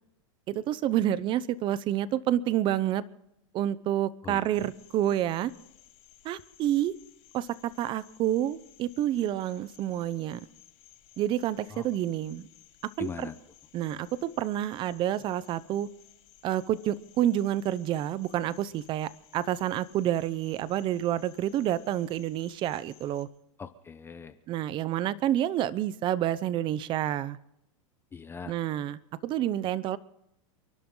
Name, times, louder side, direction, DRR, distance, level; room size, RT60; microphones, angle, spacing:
voice 1, 0.5-3.0 3.5-5.5 6.2-6.9 7.3-10.4 11.2-12.5 13.0-13.3 13.7-15.9 16.4-23.3 24.5-27.4 28.5-30.0, right 12 dB, 30° right, 18 dB, 0.8 m, -29 dB
voice 2, 4.2-4.7 11.7-11.9 13.0-13.3 23.6-24.4 28.1-28.6, left 5 dB, 15° left, 10 dB, 0.8 m, -40 dB
Cricket, 4.5-23.2, left 12 dB, 45° left, 3.6 m, -58 dB
29.5 x 11.5 x 3.9 m, 0.85 s
supercardioid pair, 145°, 17 cm